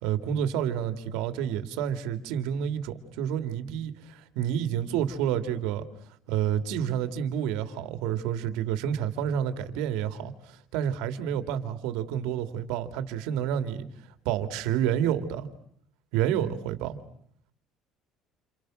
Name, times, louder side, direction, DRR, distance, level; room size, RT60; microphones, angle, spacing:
voice 1, 0.0-5.9 6.3-13.9 14.2-15.5 16.1-17.0, right 9 dB, 90° right, 2.6 m, -29 dB
29.5 x 29.0 x 6.5 m
cardioid pair, 160°, 0 cm